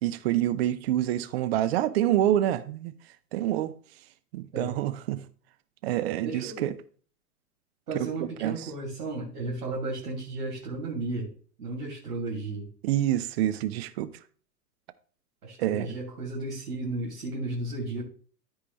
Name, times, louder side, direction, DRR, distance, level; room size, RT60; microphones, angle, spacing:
voice 1, 0.0-2.9 3.3-3.7 4.3-5.2 5.8-6.7 8.0-8.5 12.8-14.1 15.6-15.9, right 12 dB, 45° right, 0.8 m, -27 dB
voice 2, 6.2-6.7 7.9-11.3 11.6-12.7 15.4-18.0, right 2 dB, 75° right, 2.7 m, -34 dB
14.0 x 4.8 x 3.0 m
figure-of-eight pair, 100°, 45 cm